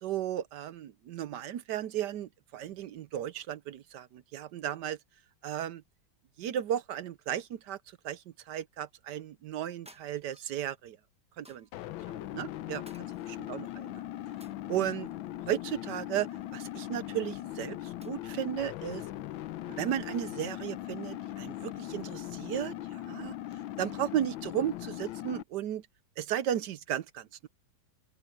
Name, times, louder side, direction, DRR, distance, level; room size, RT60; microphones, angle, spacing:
voice 1, 0.0-5.0 5.4-5.8 6.4-11.0 11.4-11.7 12.3-12.9 13.3-14.0 14.7-15.1 15.5-19.0 19.7-23.4 23.8-25.9 26.2-27.5, right 10 dB, 70° right, 1.2 m, -35 dB
sound 1, 9.8-10.6 11.4-11.9 12.8-13.7 14.4-15.1 16.1-17.0 18.0-18.6, right 1 dB, 5° right, 0.6 m, -58 dB
sound 2, 11.7-25.4, left 13 dB, 80° left, 1.4 m, -40 dB
open air
omnidirectional pair, 2.1 m